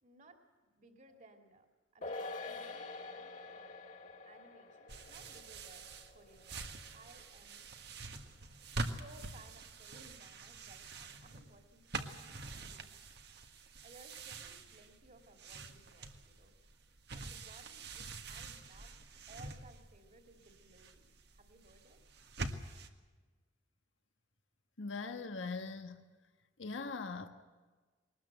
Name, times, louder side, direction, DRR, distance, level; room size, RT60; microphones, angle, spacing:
voice 1, 0.0-0.4 0.7-1.7 1.9-3.7 4.3-7.8 8.7-12.9 13.2-13.5 13.8-16.7 17.1-19.0 19.3-22.0, right 2 dB, 40° right, 4 dB, 2.8 m, -61 dB
sound 1, 2.0-8.7 9.0-9.1, left 3 dB, 40° left, 1.9 m, -48 dB
sound 2, 4.9-22.9, right 3 dB, 60° right, 1.7 m, -46 dB
voice 2, 24.8-26.0 26.6-27.3, left 4 dB, 85° left, 6 dB, 1.4 m, -41 dB
22.5 x 20.0 x 7.9 m, 1.3 s
head